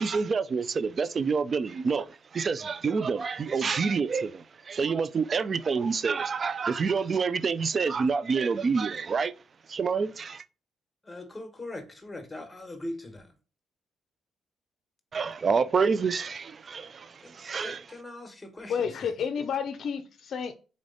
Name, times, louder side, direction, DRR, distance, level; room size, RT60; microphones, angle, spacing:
voice 1, 0.0-9.3 9.7-10.4 15.1-17.8, right 5 dB, 40° right, 0.3 m, -27 dB
voice 2, 11.0-13.3 15.9-16.0 17.2-19.0, left 1 dB, 15° left, 1.3 m, -41 dB
voice 3, 18.7-20.5, left 7 dB, 65° left, 0.5 m, -30 dB
4.1 x 3.3 x 3.8 m
cardioid pair, 90°, 0 cm